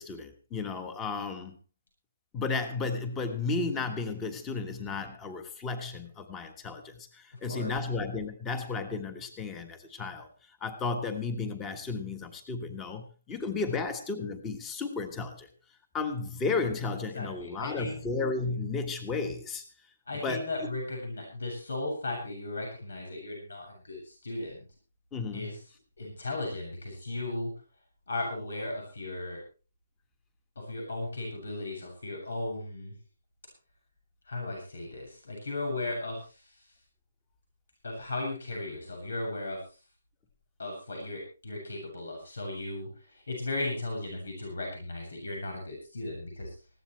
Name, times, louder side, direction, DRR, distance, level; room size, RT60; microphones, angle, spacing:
voice 1, 0.0-1.6 2.3-10.3 10.6-15.5 15.9-19.6 20.2-20.5 25.1-25.5, left 4 dB, 10° left, 9 dB, 1.4 m, -33 dB
voice 2, 7.3-7.7 17.1-18.0 20.1-24.7 25.3-25.6 26.0-27.5 28.1-29.4 30.6-33.0 34.3-36.7 37.8-39.8 40.6-46.5, left 2 dB, 90° left, 1 dB, 7.6 m, -36 dB
20.5 x 16.0 x 3.3 m, 0.34 s
hypercardioid pair, 175°, 0 cm